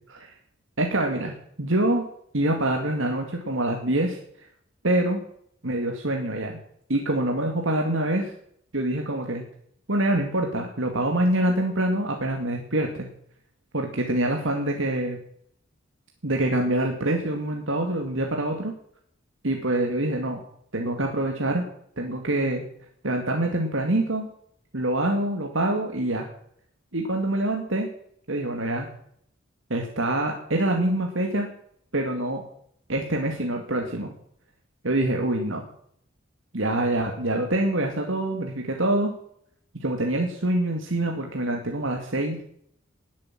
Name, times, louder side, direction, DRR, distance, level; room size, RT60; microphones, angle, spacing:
voice 1, 0.8-2.1 2.3-4.2 4.8-5.2 5.6-6.6 6.9-8.3 8.7-9.4 9.9-13.1 13.7-15.2 16.2-18.7 19.4-20.4 20.7-21.6 22.0-22.6 23.0-24.3 24.7-26.3 26.9-27.9 28.3-28.9 29.7-31.5 31.9-32.4 32.9-34.1 34.8-35.6 36.5-39.1 39.8-42.4, right 1 dB, 70° right, 2 dB, 2.4 m, -25 dB
19.5 x 8.6 x 7.7 m, 0.67 s
head